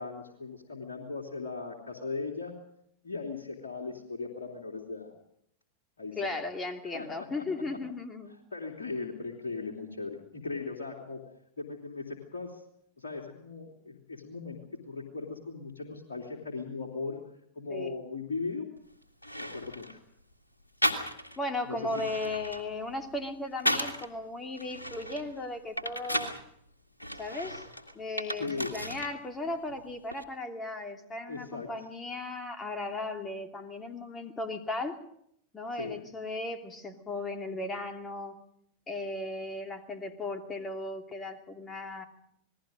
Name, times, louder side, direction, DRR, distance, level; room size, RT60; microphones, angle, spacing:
voice 1, 0.0-2.5 3.0-5.1 6.0-6.2 6.9-7.8 8.5-11.2 11.6-12.6 13.0-14.6 14.9-17.2 17.5-18.7 19.4-20.0 21.6-21.8 28.4-28.7 31.3-31.7 35.7-36.0, left 4 dB, 65° left, -1 dB, 3.1 m, -38 dB
voice 2, 6.2-8.4 17.7-17.9 21.4-26.3 27.2-27.6 27.9-35.0 35.5-38.4 38.9-42.0, left 2 dB, 15° left, 5 dB, 2.7 m, -36 dB
sound 1, 18.8-18.9 19.2-20.0 20.8-21.4 21.8-24.1 24.6-26.4 27.0-29.2 29.5-30.2, equal, 80° left, 2.1 m, -34 dB
28.0 x 20.0 x 5.2 m, 0.71 s
figure-of-eight pair, 90°, 0 cm